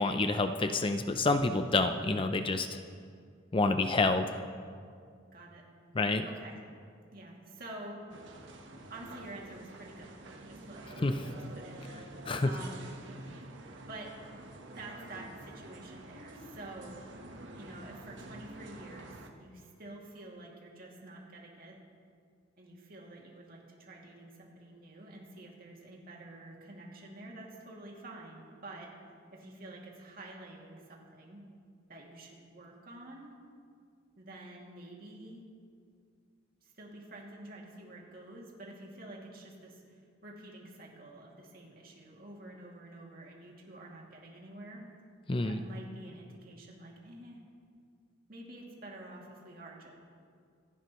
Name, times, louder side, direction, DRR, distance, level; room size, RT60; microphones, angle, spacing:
voice 1, 0.0-2.8 3.5-4.4 5.9-6.3 11.0-11.2 12.3-12.5 45.3-45.6, left 3 dB, 25° left, 8 dB, 0.5 m, -28 dB
voice 2, 3.6-3.9 5.3-5.6 6.2-6.6 7.1-8.0 8.9-10.1 10.5-12.0 12.4-13.0 13.9-14.1 14.7-17.1 17.5-21.8 22.6-28.9 29.3-31.4 31.9-33.3 34.2-35.5 36.6-44.9 45.4-47.4 48.3-49.9, right 1 dB, 50° right, -2 dB, 2.5 m, -48 dB
sound 1, 8.1-19.3, right 1 dB, 65° right, 1.2 m, -48 dB
25.5 x 11.0 x 3.1 m, 2.2 s
head